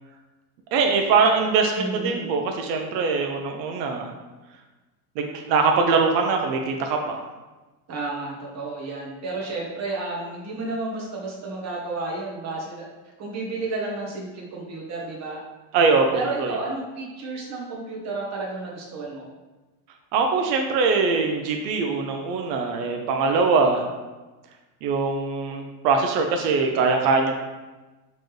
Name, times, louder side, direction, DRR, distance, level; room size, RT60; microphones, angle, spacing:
voice 1, 0.7-4.1 5.2-7.2 15.7-16.1 16.4-16.5 20.1-23.8 24.8-27.4, right 4 dB, 90° right, 3 dB, 0.7 m, -22 dB
voice 2, 1.8-2.3 7.9-15.4 16.1-19.2, right 3 dB, 35° right, -2 dB, 1.0 m, -32 dB
4.3 x 3.2 x 3.1 m, 1.2 s
supercardioid pair, 130°, 49 cm